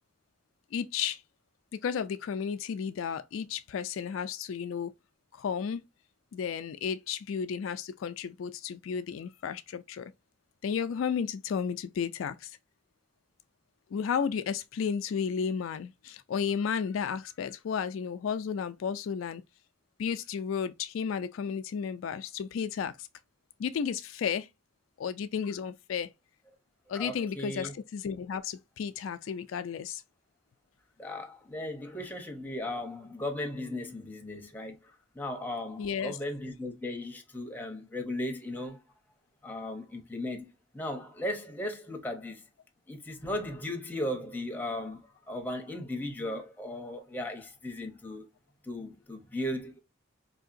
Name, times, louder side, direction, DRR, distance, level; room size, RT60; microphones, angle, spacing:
voice 1, 0.7-1.2 1.8-4.9 5.3-5.8 6.3-10.1 10.6-12.5 13.9-19.4 20.0-23.1 23.6-24.5 25.0-26.1 26.9-30.0 35.8-36.2, left 7 dB, 70° left, 0.3 m, -33 dB
voice 2, 26.9-27.7 31.0-34.8 35.1-38.8 39.4-42.4 42.9-48.3 48.6-49.8, left 1 dB, 10° left, 0.7 m, -36 dB
4.4 x 2.8 x 2.5 m
head